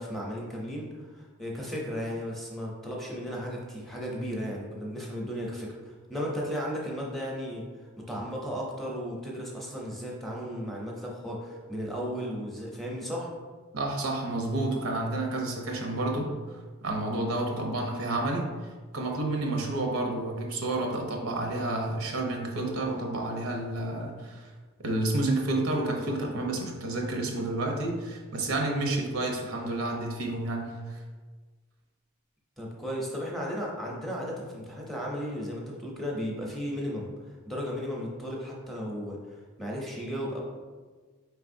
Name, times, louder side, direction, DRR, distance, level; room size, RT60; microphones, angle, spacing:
voice 1, 0.0-7.6 8.1-13.3 32.6-37.1 37.5-40.4, equal, ahead, -4 dB, 0.6 m, -35 dB
voice 2, 13.7-16.3 16.8-18.5 18.9-24.5 24.8-31.0, right 2 dB, 80° right, 1 dB, 0.7 m, -30 dB
4.6 x 3.4 x 2.6 m, 1.4 s
head